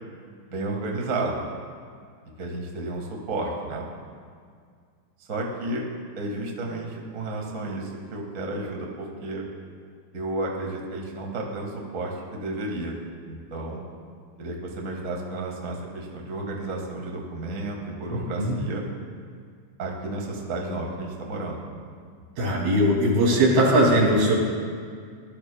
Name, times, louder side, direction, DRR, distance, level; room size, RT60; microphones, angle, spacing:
voice 1, 0.5-1.4 2.4-3.9 5.3-5.8 6.1-9.4 10.1-12.9 13.3-13.8 14.4-18.8 19.8-21.6, right 2 dB, 55° right, -1 dB, 0.8 m, -32 dB
voice 2, 18.1-18.6 22.4-24.3, right 1 dB, 85° right, -4 dB, 4.5 m, -20 dB
20.0 x 12.5 x 2.2 m, 2.1 s
omnidirectional pair, 4.1 m